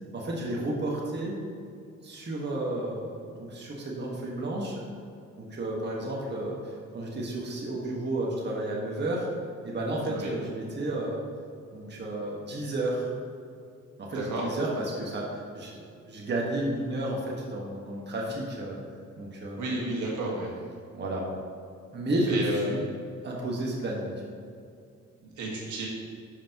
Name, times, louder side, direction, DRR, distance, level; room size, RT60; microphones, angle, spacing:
voice 1, 0.1-1.4 2.0-4.8 5.4-9.3 9.6-11.2 11.7-13.1 14.0-18.8 19.2-19.6 20.9-21.3 21.9-22.4 22.7-22.8 23.2-24.2, right 1 dB, 35° right, -3 dB, 1.6 m, -32 dB
voice 2, 14.1-14.4 19.6-20.5 22.3-22.7 25.2-25.9, right 2 dB, 75° right, -3 dB, 1.9 m, -32 dB
10.0 x 5.8 x 3.0 m, 2.3 s
cardioid pair, 90°, 30 cm